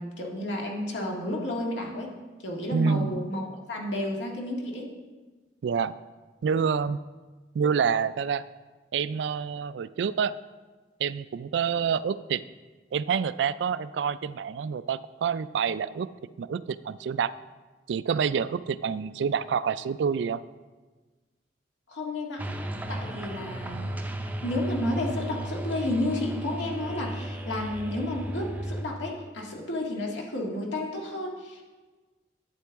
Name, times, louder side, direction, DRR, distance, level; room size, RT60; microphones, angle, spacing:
voice 1, 0.0-2.1 2.4-4.9 21.9-22.4 22.9-23.9 24.4-31.6, left 1 dB, 85° left, -1 dB, 1.8 m, -31 dB
voice 2, 2.7-3.2 5.6-5.9 6.4-7.0 7.5-8.5 8.9-10.3 11.0-12.4 12.9-16.1 16.4-17.3 17.9-20.4, right 6 dB, 70° right, 16 dB, 0.3 m, -27 dB
sound 1, 22.4-28.8, right 1 dB, 10° right, 0.5 m, -34 dB
11.5 x 8.4 x 3.5 m, 1.3 s
head